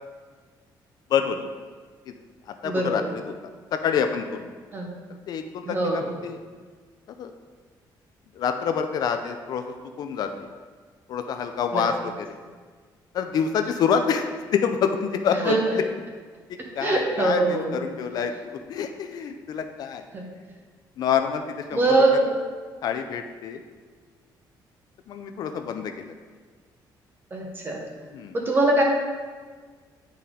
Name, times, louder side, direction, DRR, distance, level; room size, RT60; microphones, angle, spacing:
voice 1, 1.1-1.5 2.1-2.2 2.5-4.5 5.3-6.4 7.2-7.3 8.3-9.6 10.0-10.3 11.1-12.3 13.1-15.8 16.7-20.0 21.0-21.9 22.8-23.6 25.1-26.1 28.1-28.4, left 7 dB, 55° left, 6 dB, 0.4 m, -27 dB
voice 2, 2.6-3.1 4.7-5.0 5.6-6.1 11.7-11.8 15.4-15.6 16.8-17.7 20.1-20.2 21.7-22.4 27.3-27.8 28.3-28.8, right 2 dB, 25° right, 0 dB, 1.0 m, -22 dB
9.0 x 4.2 x 3.7 m, 1.5 s
cardioid pair, 165°, 8 cm